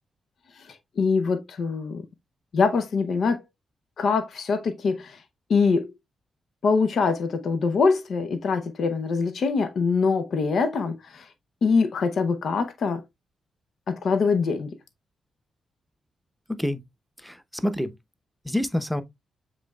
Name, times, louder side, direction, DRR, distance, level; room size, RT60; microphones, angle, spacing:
voice 1, 0.5-2.0 2.5-3.4 4.0-5.2 5.5-5.9 6.6-11.3 11.6-13.0 13.9-14.7, left 4 dB, 65° left, 0.6 m, -24 dB
voice 2, 16.5-16.8 17.2-17.9 18.4-19.0, left 1 dB, ahead, 0.8 m, -27 dB
7.2 x 3.2 x 2.3 m
supercardioid pair, 45°, 0 cm